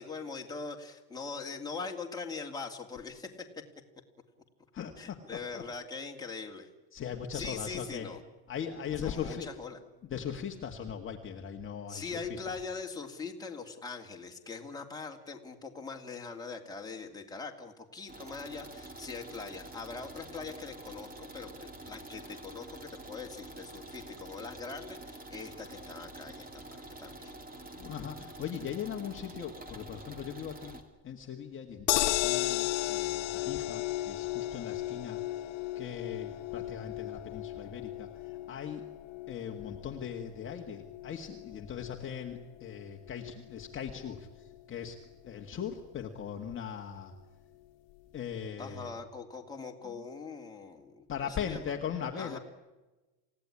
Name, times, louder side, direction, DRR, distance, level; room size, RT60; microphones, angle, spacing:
voice 1, 0.0-3.6 5.0-6.7 7.3-8.2 9.0-9.8 11.9-27.3 48.6-51.7 52.2-52.4, left 4 dB, 10° left, 1 dB, 2.6 m, -42 dB
voice 2, 4.7-5.6 6.9-8.1 8.5-9.5 10.1-12.6 27.8-35.5 35.8-38.8 39.3-45.0 45.2-47.1 48.1-49.0 49.8-50.0 51.1-52.4, left 8 dB, 25° left, 2 dB, 1.8 m, -39 dB
sound 1, 18.1-30.8, right 2 dB, 15° right, 2.9 m, -47 dB
sound 2, 31.9-44.1 44.5-44.6 44.9-45.0, left 17 dB, 60° left, 1.8 m, -35 dB
28.0 x 17.0 x 9.9 m, 1.1 s
cardioid pair, 160°, 48 cm